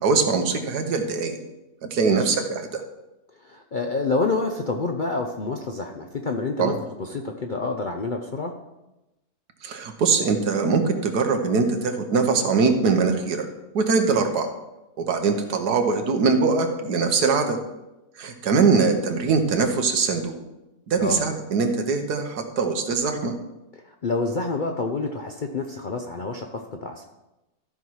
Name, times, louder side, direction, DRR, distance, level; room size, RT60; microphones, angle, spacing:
voice 1, 0.0-1.4 1.9-2.8 6.6-6.8 9.6-13.5 13.7-14.5 15.0-17.6 18.2-20.4 20.9-23.4, right 4 dB, 90° right, 5 dB, 1.6 m, -22 dB
voice 2, 3.4-8.5 21.0-21.2 23.8-27.0, left 3 dB, 55° left, 3 dB, 0.5 m, -28 dB
13.5 x 5.7 x 4.7 m, 0.99 s
omnidirectional pair, 1.7 m